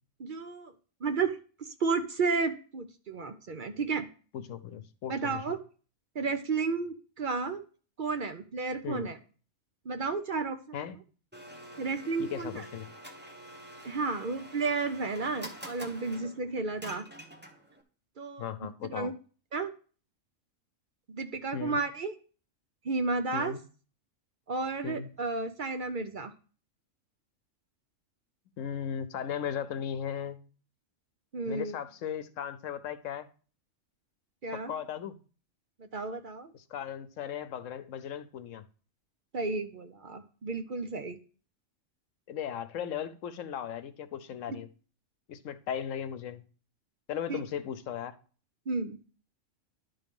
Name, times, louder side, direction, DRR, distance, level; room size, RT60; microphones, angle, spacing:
voice 1, 0.2-0.7 1.0-1.4 1.8-4.1 5.1-5.6 6.1-7.6 8.0-9.2 9.9-10.8 11.8-12.6 13.8-17.0 18.2-18.4 18.9-19.1 19.5-19.7 21.1-22.1 22.8-23.5 24.5-26.3 31.3-31.8 34.4-34.7 35.8-36.5 39.3-41.2 47.3-47.4 48.7-49.0, right 4 dB, 50° right, 0.7 m, -32 dB
voice 2, 4.3-5.6 8.8-9.1 10.7-11.0 12.2-12.9 18.4-19.1 21.5-21.8 23.3-23.6 24.8-25.1 28.6-30.4 31.5-33.3 34.5-35.2 36.5-38.6 42.3-44.7 45.3-46.4 47.1-48.1, left 8 dB, 85° left, 1.1 m, -37 dB
Domestic sounds home sounds, 11.3-17.8, equal, 10° right, 1.0 m, -47 dB
11.5 x 3.9 x 5.3 m
omnidirectional pair, 1.3 m